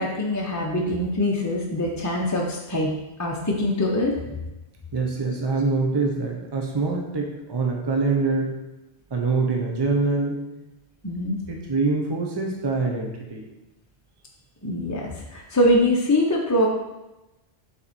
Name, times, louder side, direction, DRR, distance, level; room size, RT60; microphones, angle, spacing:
voice 1, 0.0-2.9 3.2-4.3 11.0-11.4 14.6-16.7, left 1 dB, 20° left, -2 dB, 0.8 m, -23 dB
voice 2, 4.9-8.5 9.1-10.4 11.5-13.4, right 3 dB, 25° right, 0 dB, 0.9 m, -24 dB
7.2 x 4.4 x 4.3 m, 0.98 s
omnidirectional pair, 1.1 m